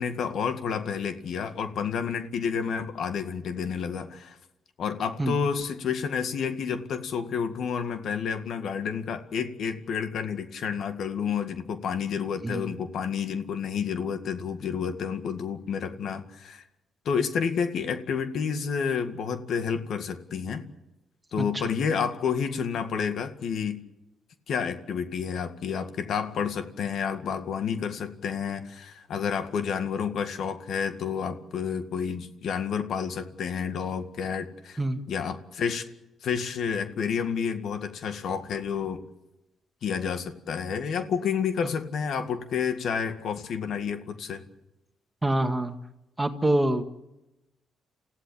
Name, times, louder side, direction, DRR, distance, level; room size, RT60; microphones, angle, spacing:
voice 1, 0.0-4.4 4.8-16.6 17.1-20.7 21.3-23.8 24.5-34.8 35.1-35.9 36.2-39.0 39.8-44.4, left 6 dB, 65° left, 8 dB, 2.0 m, -30 dB
voice 2, 45.2-45.8 46.2-46.8, right 1 dB, 15° right, 7 dB, 1.9 m, -25 dB
28.5 x 15.5 x 8.8 m, 0.95 s
cardioid pair, 90°, 0 cm